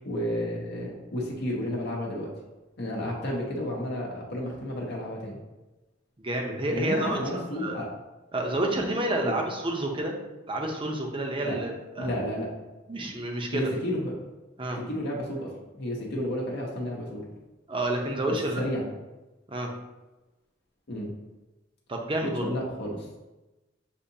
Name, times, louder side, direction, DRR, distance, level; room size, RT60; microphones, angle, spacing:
voice 1, 0.0-2.3 2.8-5.4 6.7-7.9 9.2-9.4 11.4-11.6 12.0-12.5 13.5-14.1 14.9-17.3 18.3-18.8 20.9-21.1 22.2-23.1, left 1 dB, 60° left, -3 dB, 0.8 m, -32 dB
voice 2, 6.2-7.2 7.5-7.8 8.3-10.2 10.5-12.1 12.9-13.7 14.6-14.8 17.7-18.6 19.5-19.7 21.9-22.5, right 1 dB, 25° right, 2 dB, 0.7 m, -29 dB
6.7 x 2.7 x 2.7 m, 1.1 s
head